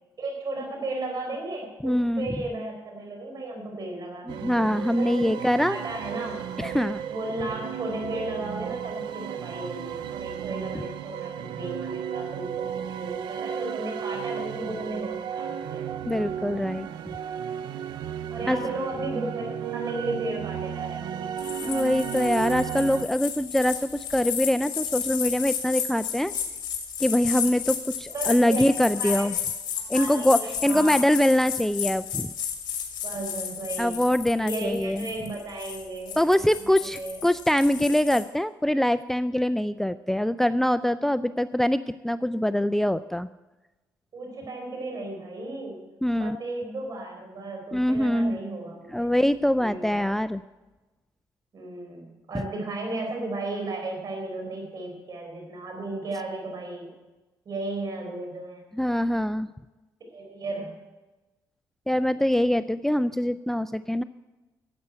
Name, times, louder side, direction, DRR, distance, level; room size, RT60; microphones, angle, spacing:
voice 1, 0.2-4.5 5.0-6.5 7.1-15.8 18.3-21.3 28.1-28.7 29.0-29.3 29.9-31.1 33.0-34.1 34.4-36.2 36.8-37.2 41.2-41.3 44.1-45.8 46.1-49.1 49.5-50.1 51.5-56.9 57.4-58.6 60.1-60.7, right 2 dB, 55° right, 2 dB, 4.8 m, -34 dB
voice 2, 1.8-2.3 4.3-5.8 6.6-7.0 16.0-16.9 18.5-18.6 21.6-26.3 27.0-29.3 29.9-32.3 33.8-35.1 36.2-43.3 46.0-46.4 47.7-48.4 48.9-50.4 58.7-59.5 61.9-64.0, left 1 dB, 5° left, 14 dB, 0.4 m, -24 dB
sound 1, 4.3-23.0, right 9 dB, 90° right, 0.6 m, -34 dB
sound 2, 21.4-38.2, left 8 dB, 70° left, 2.3 m, -33 dB
11.0 x 8.0 x 8.9 m, 1.1 s
cardioid pair, 85°, 8 cm